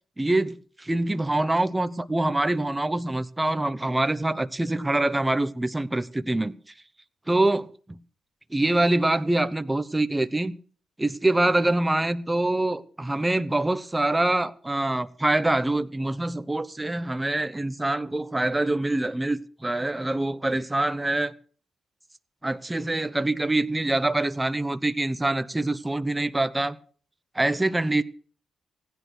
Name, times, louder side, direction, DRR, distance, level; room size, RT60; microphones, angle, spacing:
voice 1, 0.2-6.5 7.3-8.0 8.5-10.5 11.0-21.3 22.4-26.8 27.3-28.0, right 2 dB, 15° right, 0.9 m, -25 dB
16.0 x 10.5 x 6.4 m
supercardioid pair, 60°, 0 cm